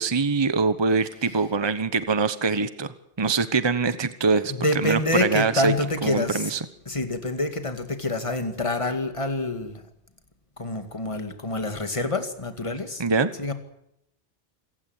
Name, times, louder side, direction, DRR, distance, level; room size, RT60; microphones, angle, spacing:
voice 1, 0.0-4.5 4.8-5.7 6.0-6.6 13.0-13.3, right 4 dB, 25° right, 12 dB, 1.1 m, -23 dB
voice 2, 4.5-6.5 6.9-9.8 10.6-13.0 13.4-13.5, left 2 dB, 30° left, 7 dB, 2.2 m, -27 dB
27.0 x 16.0 x 9.5 m, 0.80 s
omnidirectional pair, 1.1 m